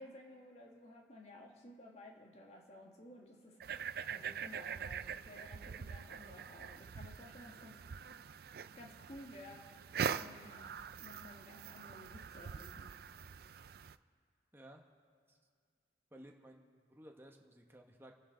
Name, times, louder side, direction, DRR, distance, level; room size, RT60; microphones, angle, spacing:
voice 1, 0.0-3.6 4.1-7.9 8.7-9.7 9.9-12.9, left 1 dB, 35° left, 0 dB, 1.8 m, -55 dB
sound 1, 3.6-13.9, right 7 dB, 55° right, 0.4 m, -44 dB
voice 2, 16.1-18.1, right 1 dB, 10° right, 2 dB, 1.1 m, -56 dB
29.0 x 9.9 x 3.9 m, 2.1 s
head